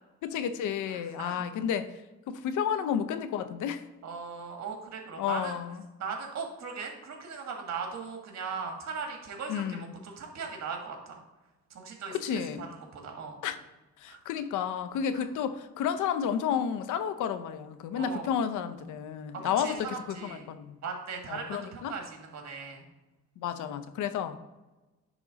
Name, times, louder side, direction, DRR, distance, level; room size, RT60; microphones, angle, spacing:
voice 1, 0.2-1.9 2.3-3.8 5.2-5.8 9.5-9.9 12.1-12.7 13.4-13.6 14.0-20.8 21.3-21.9 23.4-24.4, left 8 dB, 80° left, 12 dB, 0.7 m, -31 dB
voice 2, 0.9-1.4 4.0-5.5 6.0-11.2 11.7-12.4 12.7-13.4 14.1-14.2 15.1-15.2 17.9-18.3 19.3-20.5 20.8-22.8, right 5 dB, 60° right, 2 dB, 1.7 m, -39 dB
10.0 x 3.7 x 3.9 m, 1.1 s
cardioid pair, 90°, 30 cm